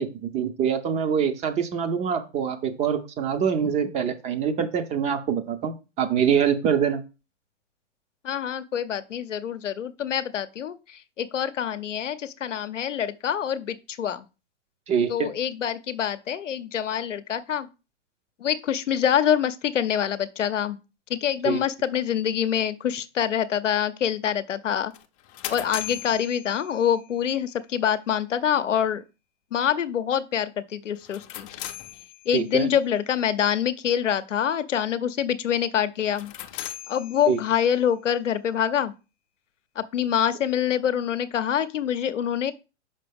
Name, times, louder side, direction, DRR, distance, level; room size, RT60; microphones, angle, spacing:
voice 1, 0.0-7.0 14.9-15.3 21.4-21.6 32.3-32.7 37.3-37.4, right 7 dB, 20° right, 0.5 m, -25 dB
voice 2, 8.2-14.3 15.1-17.7 18.4-20.8 21.1-24.9 25.5-29.0 29.5-31.5 32.3-36.3 36.9-38.9 39.8-42.5, left 9 dB, 85° left, 0.7 m, -25 dB
sound 1, 24.9-27.2 31.0-32.6 36.0-37.8, left 13 dB, 30° left, 0.5 m, -39 dB
6.0 x 5.6 x 3.4 m
hypercardioid pair, 120°, 36 cm